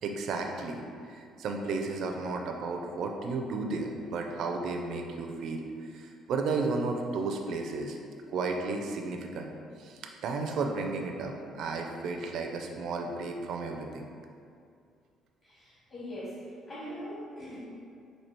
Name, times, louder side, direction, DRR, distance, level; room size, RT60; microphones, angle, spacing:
voice 1, 0.0-8.0 8.3-9.5 9.8-14.1, right 3 dB, 60° right, 3 dB, 0.4 m, -33 dB
voice 2, 15.4-17.7, equal, 35° left, -8 dB, 0.9 m, -41 dB
4.4 x 2.7 x 4.4 m, 2.4 s
cardioid pair, 160°, 0 cm